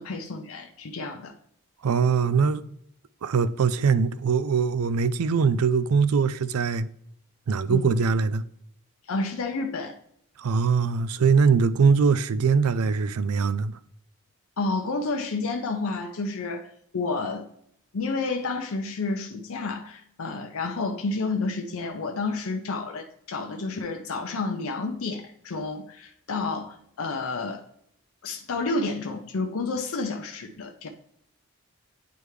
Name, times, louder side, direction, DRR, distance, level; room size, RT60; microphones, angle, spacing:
voice 1, 0.0-1.3 7.7-7.9 9.1-10.0 14.6-16.7 16.9-17.5 17.9-27.6 28.2-30.9, left 3 dB, 75° left, 0.6 m, -30 dB
voice 2, 1.8-2.6 3.2-6.9 7.5-8.4 10.4-13.8, right 5 dB, 85° right, 0.4 m, -22 dB
9.2 x 3.4 x 3.2 m
head